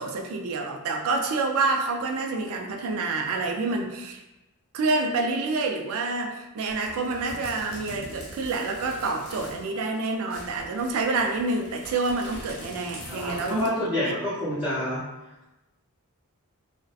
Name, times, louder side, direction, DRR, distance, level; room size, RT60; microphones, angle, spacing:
voice 1, 0.0-4.2 4.7-14.1, right 3 dB, 65° right, 2 dB, 0.3 m, -28 dB
sound 1, 6.7-9.7 9.9-10.0 10.3-13.8, left 1 dB, 75° left, 0.8 m, -43 dB
voice 2, 13.1-15.0, left 1 dB, 5° right, -12 dB, 0.7 m, -28 dB
2.6 x 2.1 x 2.3 m, 0.99 s
head